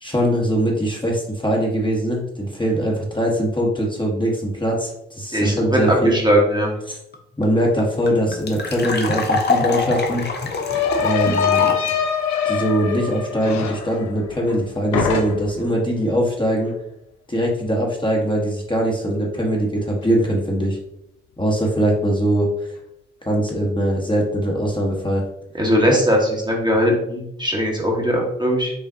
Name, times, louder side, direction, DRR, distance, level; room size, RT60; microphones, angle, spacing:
voice 1, 0.0-6.2 6.9-7.0 7.4-10.3 11.0-11.9 12.4-16.7 17.3-20.8 21.4-22.7 23.2-25.2, equal, 15° left, -2 dB, 1.1 m, -21 dB
voice 2, 6.0-6.7 25.6-28.7, equal, 15° right, -1 dB, 1.1 m, -19 dB
sound 1, 7.1-7.2 7.4-7.5 7.8-11.9, left 4 dB, 35° left, 0.8 m, -24 dB
sound 2, 9.0-9.1 9.4-14.6 14.9-15.7, left 7 dB, 65° left, 0.6 m, -24 dB
4.9 x 2.5 x 2.6 m, 0.80 s
hypercardioid pair, 45°, 31 cm